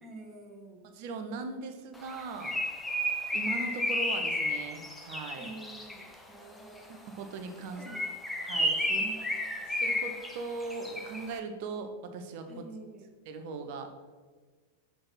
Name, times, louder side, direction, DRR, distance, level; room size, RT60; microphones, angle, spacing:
voice 1, 0.0-0.9 5.3-7.1 7.8-8.1 8.9-9.2 9.6-9.7 12.5-13.1, right 2 dB, 15° right, 0 dB, 1.6 m, -48 dB
voice 2, 0.8-2.6 3.3-5.5 6.9-7.8 8.4-9.1 9.7-12.6 13.3-13.9, right 4 dB, 50° right, 6 dB, 0.9 m, -39 dB
Bird, 2.0-6.1 7.8-11.3, left 1 dB, 5° left, 0.9 m, -32 dB
6.8 x 5.7 x 4.2 m, 1.4 s
figure-of-eight pair, 90°, 0 cm